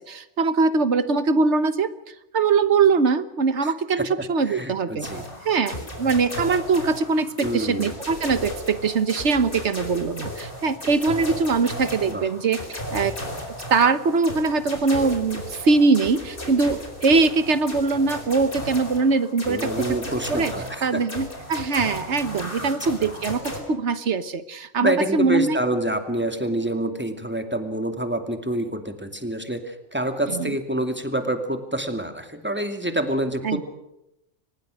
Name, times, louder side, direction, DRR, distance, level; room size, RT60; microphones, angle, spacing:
voice 1, 0.1-1.9 2.3-5.1 5.4-13.1 13.7-19.9 20.3-20.5 20.8-25.6 30.3-30.5 33.4-33.6, right 4 dB, 75° right, 13 dB, 1.5 m, -22 dB
voice 2, 3.6-4.1 4.5-5.3 7.4-8.0 12.1-12.3 19.5-21.0 22.6-22.7 23.0-23.1 24.8-33.7, right 1 dB, 10° right, 6 dB, 2.5 m, -27 dB
sound 1, 5.0-23.6, left 1 dB, 50° left, 4.7 m, -35 dB
24.0 x 20.5 x 6.4 m, 0.88 s
omnidirectional pair, 1.2 m